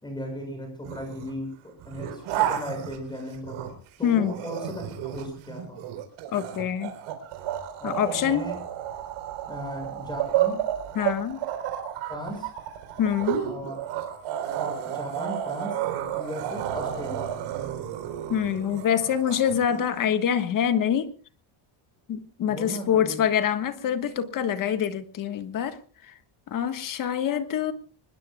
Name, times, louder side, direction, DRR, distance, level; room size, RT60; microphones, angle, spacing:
voice 1, 0.0-3.7 4.0-5.8 7.8-8.6 9.5-10.6 12.1-12.5 13.4-13.9 14.6-15.8 16.1-17.3 22.4-23.2, equal, 10° left, 4 dB, 6.7 m, -36 dB
sound 1, 0.8-1.3 1.8-3.9 4.2-19.8, right 11 dB, 80° right, 4.4 m, -31 dB
voice 2, 4.0-4.3 6.3-6.9 7.8-8.4 10.9-11.4 13.0-13.4 18.3-21.1 22.1-25.8 26.5-27.7, left 9 dB, 40° left, 9 dB, 1.5 m, -25 dB
25.0 x 21.0 x 2.4 m, 0.39 s
cardioid pair, 175°, 48 cm